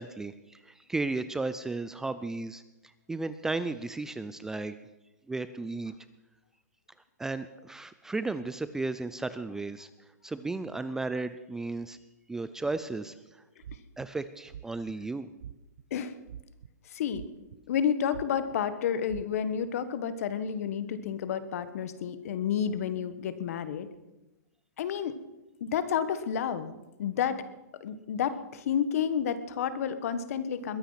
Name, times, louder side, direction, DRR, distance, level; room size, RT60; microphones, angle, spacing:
voice 1, 0.0-2.6 3.1-4.7 5.3-5.9 7.2-9.9 10.2-12.0 12.3-13.2 14.0-15.3, right 3 dB, 5° right, 13 dB, 0.4 m, -34 dB
sound 1, 13.6-14.1 14.5-14.9 15.4-15.8 16.3-16.7 17.1-17.8 18.1-18.5 19.1-19.2, right 9 dB, 70° right, 0.6 m, -44 dB
voice 2, 16.9-17.3 17.7-23.9 24.8-25.2 25.6-27.4 27.8-30.8, left 8 dB, 55° left, 13 dB, 1.4 m, -30 dB
21.5 x 8.9 x 5.7 m, 1.0 s
hypercardioid pair, 150°, 9 cm